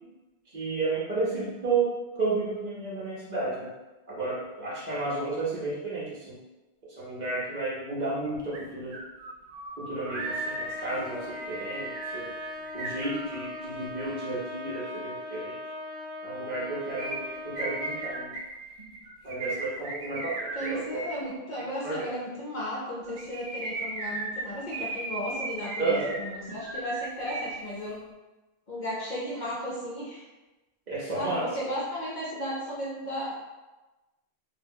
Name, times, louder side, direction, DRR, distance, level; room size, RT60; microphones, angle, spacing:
voice 1, 0.5-3.7 4.1-6.4 7.0-9.0 9.8-12.4 12.7-15.6 16.2-18.3 19.2-21.0 21.8-22.1 25.8-26.2 30.9-31.4, right 3 dB, 50° right, -6 dB, 0.7 m, -32 dB
sound 1, 8.5-8.6 8.9-13.7 17.0-21.2 23.0-27.6 27.9-28.0, right 2 dB, 75° right, 0.9 m, -36 dB
Trumpet, 10.1-18.2, left 1 dB, 10° right, 0.7 m, -40 dB
voice 2, 20.5-28.0 28.7-30.2 31.1-33.3, equal, 55° left, -6 dB, 0.6 m, -35 dB
2.3 x 2.2 x 3.4 m, 1.1 s
omnidirectional pair, 1.1 m